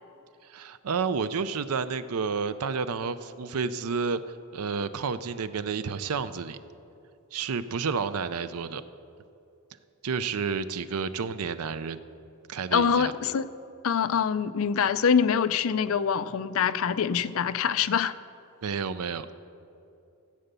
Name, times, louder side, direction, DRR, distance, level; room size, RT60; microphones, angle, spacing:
voice 1, 0.4-4.2 4.5-6.6 7.3-8.8 10.0-12.0 12.5-13.1 18.6-19.3, right 5 dB, 75° right, 13 dB, 0.5 m, -30 dB
voice 2, 12.7-13.5 13.8-18.1, left 7 dB, 65° left, 14 dB, 0.4 m, -25 dB
15.0 x 8.0 x 6.8 m, 2.7 s
head